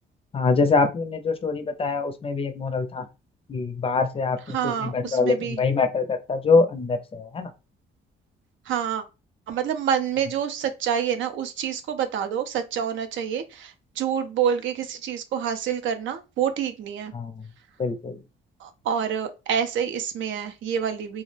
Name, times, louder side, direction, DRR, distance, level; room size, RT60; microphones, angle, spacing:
voice 1, 0.3-3.0 3.5-7.5 17.1-17.3 17.8-18.2, left 4 dB, 30° left, 0.4 m, -24 dB
voice 2, 4.5-5.6 8.7-9.0 9.5-17.1 18.6-21.2, right 8 dB, 75° right, 0.5 m, -27 dB
2.3 x 2.0 x 3.1 m
cardioid pair, 90°, 20 cm